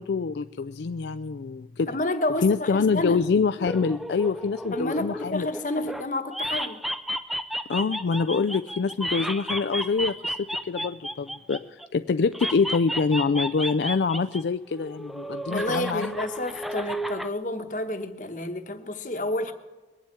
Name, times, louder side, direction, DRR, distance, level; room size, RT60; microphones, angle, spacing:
voice 1, 0.0-1.9 2.4-5.5 7.7-16.1, left 4 dB, 75° left, 0.4 m, -25 dB
voice 2, 1.9-3.2 4.7-6.8 15.5-19.5, left 1 dB, 45° left, 1.1 m, -30 dB
sound 1, 3.6-6.0 6.3-11.9 12.3-14.4 14.7-17.3, equal, ahead, 0.4 m, -32 dB
21.5 x 7.4 x 8.9 m
head